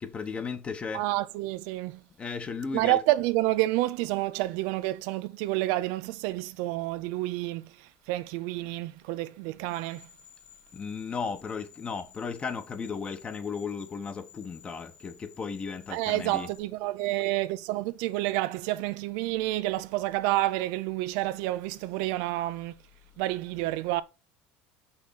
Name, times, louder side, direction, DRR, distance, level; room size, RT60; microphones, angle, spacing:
voice 1, 0.0-1.0 2.2-3.0 10.7-16.5, left 5 dB, 20° left, 1.0 m, -35 dB
voice 2, 0.9-2.0 2.7-10.1 15.9-22.8 23.2-24.0, right 17 dB, 70° right, 0.6 m, -29 dB
sound 1, 9.7-16.6, left 8 dB, 85° left, 2.8 m, -55 dB
6.2 x 5.7 x 4.2 m
cardioid pair, 145°, 5 cm